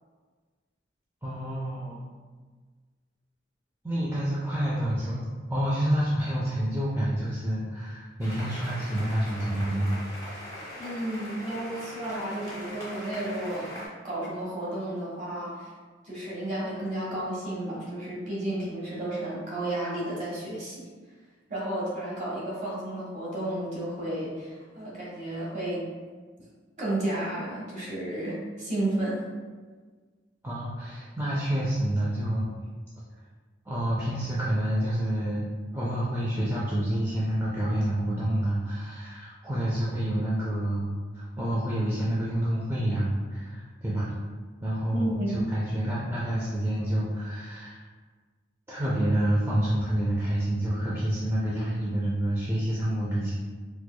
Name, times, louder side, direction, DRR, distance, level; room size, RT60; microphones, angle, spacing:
voice 1, 1.2-2.0 3.8-9.9 30.4-32.5 33.7-35.4 35.7-40.9 41.1-44.1 44.6-47.8 48.7-53.3, right 1 dB, 15° right, -8 dB, 0.4 m, -28 dB
sound 1, 8.2-13.9, equal, 15° left, 0.7 m, -41 dB
voice 2, 10.8-15.7 16.0-20.9 21.5-25.9 26.8-29.2 44.9-45.4, right 1 dB, 40° right, -7 dB, 1.3 m, -32 dB
4.5 x 2.3 x 2.2 m, 1.4 s
head